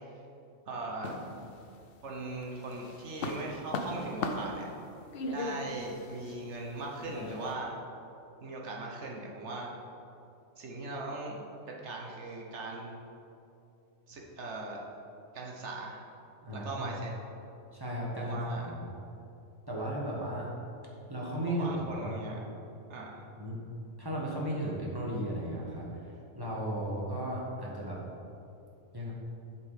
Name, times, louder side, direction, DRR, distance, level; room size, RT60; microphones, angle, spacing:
voice 1, 0.7-1.1 2.0-4.7 5.3-7.8 8.4-9.7 10.6-11.4 11.7-13.0 14.1-14.8 15.3-16.0 16.5-17.1 18.2-18.7 21.6-22.4 22.9-23.2, right 2 dB, 60° right, -1 dB, 1.3 m, -39 dB
sound 1, 1.0-2.0 2.4-7.6, left 2 dB, 55° left, 0.7 m, -38 dB
voice 2, 16.4-16.9 17.7-18.9 19.7-20.5 21.1-22.1 23.4-23.6 24.0-28.0 28.9-29.1, right 1 dB, 15° right, -5 dB, 1.4 m, -35 dB
7.9 x 5.7 x 5.1 m, 2.8 s
omnidirectional pair, 1.4 m